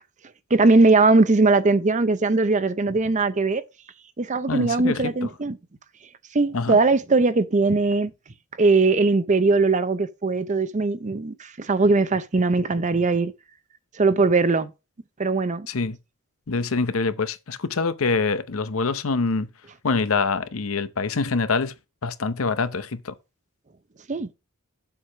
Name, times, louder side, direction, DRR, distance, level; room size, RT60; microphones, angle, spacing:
voice 1, 0.5-3.6 4.2-5.6 6.3-8.1 8.6-13.3 14.0-14.7 15.2-15.7 24.1-24.3, right 3 dB, 35° right, 0.6 m, -20 dB
voice 2, 4.5-5.3 6.5-6.8 15.7-16.0 16.5-19.5 19.8-21.7 22.0-23.1, left 4 dB, 75° left, 0.8 m, -25 dB
7.3 x 4.8 x 5.8 m
head